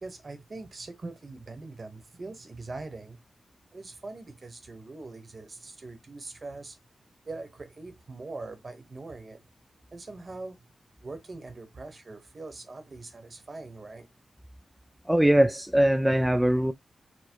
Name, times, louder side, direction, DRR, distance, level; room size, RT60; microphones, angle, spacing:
voice 1, 0.0-3.2 3.7-6.8 7.3-9.4 9.9-10.7 11.0-14.1, right 3 dB, 40° right, 1.0 m, -42 dB
voice 2, 15.1-16.7, right 1 dB, 5° right, 0.3 m, -21 dB
4.6 x 2.1 x 4.4 m
cardioid pair, 80°, 0 cm